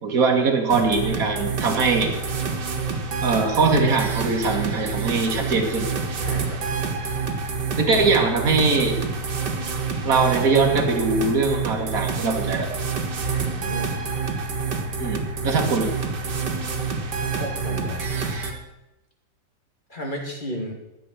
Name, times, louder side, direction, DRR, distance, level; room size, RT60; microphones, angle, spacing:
voice 1, 0.0-2.1 3.2-5.9 7.8-9.0 10.1-12.7 15.0-15.9, right 4 dB, 55° right, 2 dB, 2.3 m, -21 dB
sound 1, 0.7-18.5, right 4 dB, 80° right, 2.2 m, -27 dB
voice 2, 6.3-6.6 13.5-14.0 15.4-15.5 17.4-18.1 19.9-20.7, equal, 25° left, 0 dB, 2.7 m, -33 dB
13.5 x 8.9 x 6.3 m, 0.96 s
omnidirectional pair, 1.8 m